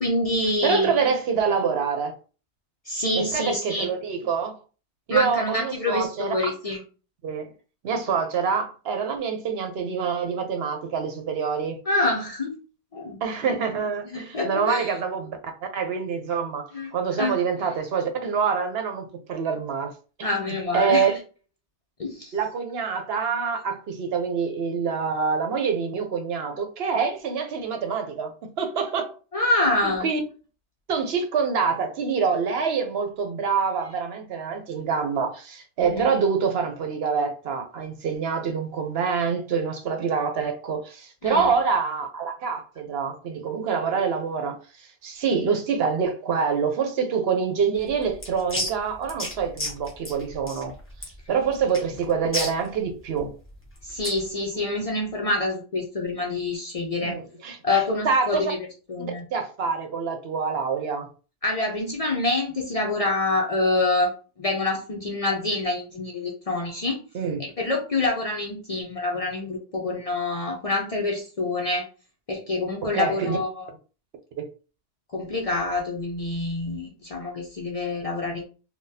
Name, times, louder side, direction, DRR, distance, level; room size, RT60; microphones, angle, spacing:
voice 1, 0.0-1.0 2.9-3.9 5.1-6.8 11.9-12.6 12.9-13.2 14.0-14.9 16.7-16.9 17.2-17.3 20.2-21.2 22.0-22.3 29.3-30.1 35.8-36.1 41.2-41.5 53.8-57.2 57.6-59.2 61.4-64.1 64.4-67.0 67.4-71.8 72.3-73.7 75.1-78.4, left 2 dB, 45° left, 0.5 m, -26 dB
voice 2, 0.6-2.2 3.1-4.6 5.1-6.3 7.2-7.5 7.8-11.8 13.2-15.4 15.7-19.9 20.2-21.1 22.3-29.1 30.0-30.2 30.9-44.6 45.0-50.7 51.3-53.3 57.0-57.6 58.0-58.4 59.0-61.1 67.1-67.5 72.9-73.4 74.4-74.5, right 6 dB, 70° right, 0.8 m, -26 dB
sound 1, 47.7-54.3, left 1 dB, 15° left, 0.8 m, -34 dB
3.9 x 2.2 x 2.6 m
omnidirectional pair, 1.1 m